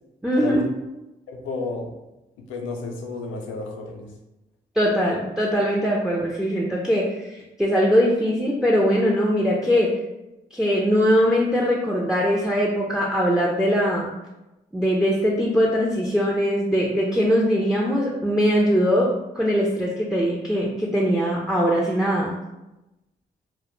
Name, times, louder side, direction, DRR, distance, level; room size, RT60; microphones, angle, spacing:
voice 1, 0.2-0.6 4.8-9.9 10.5-14.1 14.7-19.1 19.3-22.4, equal, 5° right, -2 dB, 0.4 m, -21 dB
voice 2, 1.3-1.9 2.4-4.1, left 3 dB, 85° left, 1 dB, 0.4 m, -31 dB
2.1 x 2.1 x 3.0 m, 0.97 s
supercardioid pair, 45°, 20 cm